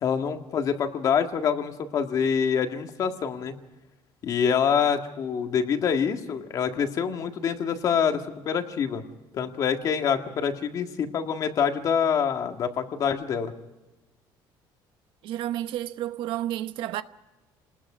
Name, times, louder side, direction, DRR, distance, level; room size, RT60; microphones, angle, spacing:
voice 1, 0.0-3.5 4.2-9.0 9.3-13.5, left 7 dB, 40° left, 1.7 m, -26 dB
voice 2, 15.2-17.0, right 13 dB, 70° right, 0.9 m, -31 dB
28.5 x 20.0 x 4.9 m
cardioid pair, 165°, 9 cm